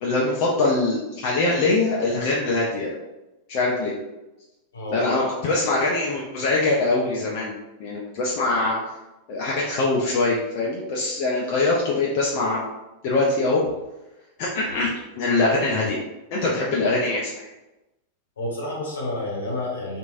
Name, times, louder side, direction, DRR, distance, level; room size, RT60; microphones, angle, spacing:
voice 1, 0.0-2.9 3.5-3.9 4.9-7.5 7.8-8.8 9.3-12.7 13.0-13.6 14.4-14.9 15.2-16.0 16.3-17.5, left 2 dB, 45° left, -4 dB, 0.5 m, -23 dB
voice 2, 4.7-5.1 8.6-8.8 18.4-20.0, left 1 dB, 70° left, -3 dB, 0.9 m, -30 dB
3.0 x 2.6 x 2.4 m, 1.0 s
figure-of-eight pair, 90°, 0 cm